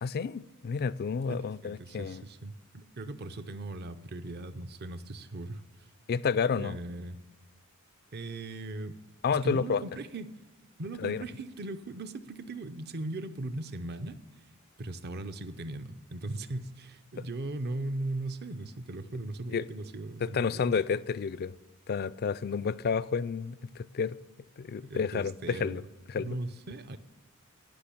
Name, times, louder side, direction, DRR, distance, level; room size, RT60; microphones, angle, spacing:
voice 1, 0.0-2.2 6.1-6.8 9.2-9.8 11.0-11.2 19.5-19.7 20.2-21.5 21.9-24.2 24.6-25.8 26.1-26.4, left 6 dB, 45° left, 0.4 m, -30 dB
voice 2, 1.3-5.9 6.5-7.2 8.1-9.0 9.3-10.4 10.8-14.2 14.8-20.7 24.8-25.8 26.2-27.0, right 2 dB, 50° right, 0.7 m, -38 dB
15.5 x 6.0 x 8.6 m
head